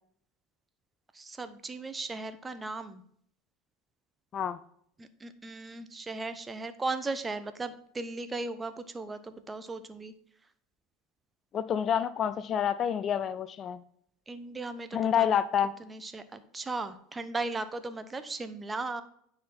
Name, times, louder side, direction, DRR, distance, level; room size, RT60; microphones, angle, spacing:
voice 1, 1.1-3.0 5.0-10.1 14.3-15.4 15.8-19.0, right 3 dB, 20° right, 11 dB, 0.9 m, -37 dB
voice 2, 11.5-13.8 14.9-15.7, left 9 dB, 40° left, 15 dB, 0.4 m, -28 dB
9.2 x 4.3 x 4.2 m, 0.65 s
hypercardioid pair, 80°, 0 cm